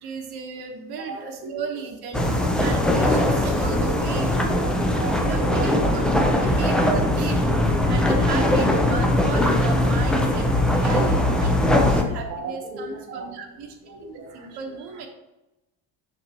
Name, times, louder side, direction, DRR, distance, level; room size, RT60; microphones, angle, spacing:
voice 1, 0.0-4.6 5.2-15.1, right 5 dB, 60° right, 3 dB, 1.2 m, -35 dB
voice 2, 1.0-1.6 3.4-4.0 4.6-6.3 7.5-7.9 11.0-11.1 11.4-11.6 12.1-13.3 13.9-14.6, right 3 dB, 35° right, 0 dB, 0.9 m, -36 dB
sound 1, 2.1-12.0, left 1 dB, ahead, 0.4 m, -20 dB
6.6 x 5.8 x 2.9 m, 0.97 s
cardioid pair, 145°, 43 cm